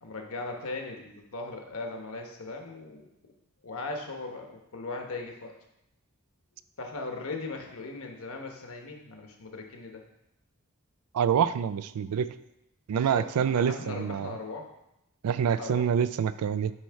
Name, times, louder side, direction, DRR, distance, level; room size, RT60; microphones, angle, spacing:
voice 1, 0.0-3.1 3.6-5.5 6.8-10.0 12.0-12.1 12.9-14.7 15.4-15.9, left 3 dB, 65° left, 2 dB, 1.1 m, -38 dB
voice 2, 11.1-12.3 12.9-14.3 15.2-16.7, right 8 dB, 80° right, 14 dB, 0.3 m, -26 dB
8.5 x 3.2 x 4.7 m, 0.86 s
head